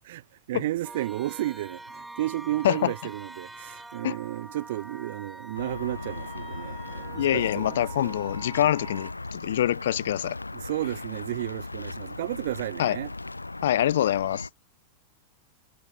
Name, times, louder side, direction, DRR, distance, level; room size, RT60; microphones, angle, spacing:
voice 1, 0.0-8.1 10.5-13.1, right 15 dB, 55° right, 0.8 m, -33 dB
sound 1, 0.8-9.1, right 2 dB, 5° right, 1.3 m, -44 dB
sound 2, 5.5-14.5, left 2 dB, 80° left, 2.3 m, -38 dB
voice 2, 7.1-10.4 12.8-13.0 13.6-14.5, left 12 dB, 60° left, 0.3 m, -25 dB
figure-of-eight pair, 90°, 0 cm